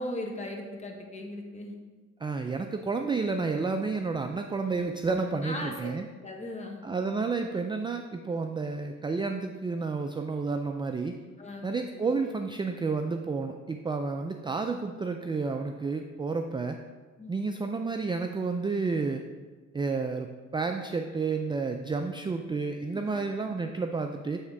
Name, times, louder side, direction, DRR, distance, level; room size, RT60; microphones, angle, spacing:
voice 1, 0.0-1.8 5.4-5.9 6.2-6.8 11.4-11.7 11.9-12.1 17.2-17.3 22.9-23.3, left 1 dB, 25° left, 1 dB, 1.3 m, -38 dB
voice 2, 2.2-6.1 6.8-11.2 11.6-16.8 17.3-19.2 19.7-24.4, right 4 dB, 15° right, 5 dB, 0.3 m, -31 dB
7.7 x 3.6 x 4.7 m, 1.4 s
cardioid pair, 90°, 30 cm